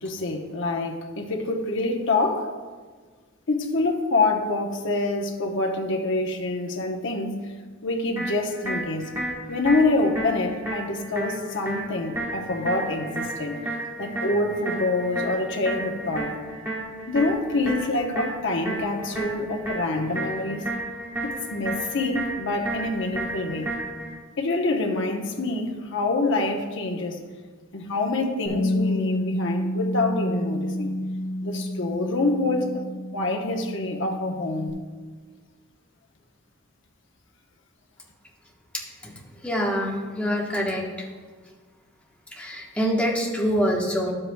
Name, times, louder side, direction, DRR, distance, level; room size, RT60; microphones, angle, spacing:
voice 1, 0.0-2.5 3.5-7.5 7.8-9.1 9.5-13.6 14.0-16.3 17.1-20.6 21.2-23.7 24.4-27.2 27.7-30.9 31.4-32.8 33.1-34.8, left 2 dB, 60° left, 2 dB, 0.9 m, -26 dB
sound 1, 8.2-24.2, right 2 dB, 10° right, 1.3 m, -33 dB
Bass guitar, 28.5-34.7, left 1 dB, 20° left, 1.3 m, -29 dB
voice 2, 39.4-41.1 42.4-44.1, equal, 5° left, -3 dB, 1.1 m, -25 dB
11.5 x 7.6 x 2.2 m, 1.5 s
head